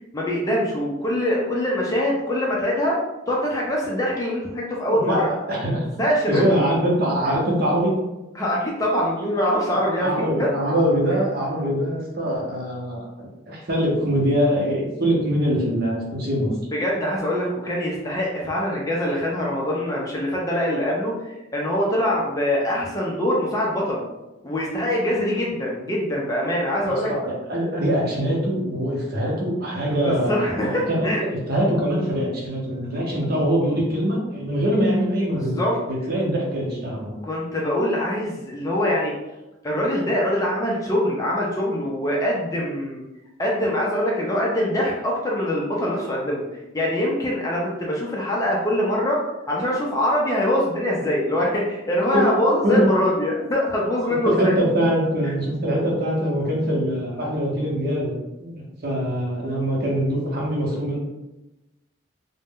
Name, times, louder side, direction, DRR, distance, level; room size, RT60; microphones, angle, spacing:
voice 1, 0.1-3.0 3.3-5.3 6.0-6.6 8.4-10.5 16.7-21.1 21.5-24.0 24.4-27.1 29.9-31.2 35.3-35.8 37.3-39.1 39.6-43.0 43.4-46.4 46.7-54.5, left 1 dB, 15° left, -3 dB, 0.4 m, -23 dB
voice 2, 4.9-5.8 6.3-7.9 9.2-9.3 10.0-16.5 26.8-35.6 35.9-37.2 52.1-52.2 52.6-52.9 54.2-58.1 58.4-61.0, equal, 45° right, -3 dB, 0.7 m, -23 dB
2.5 x 2.1 x 3.5 m, 1.0 s
head